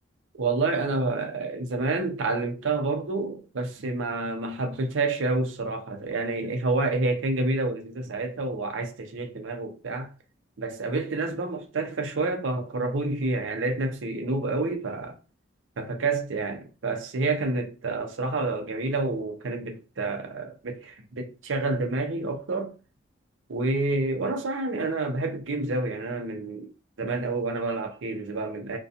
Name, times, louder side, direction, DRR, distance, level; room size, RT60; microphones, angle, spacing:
voice 1, 0.4-10.1 10.6-15.2 15.8-22.7 23.5-26.7 27.0-28.8, right 3 dB, 80° right, 0.6 m, -28 dB
2.4 x 2.2 x 2.7 m
head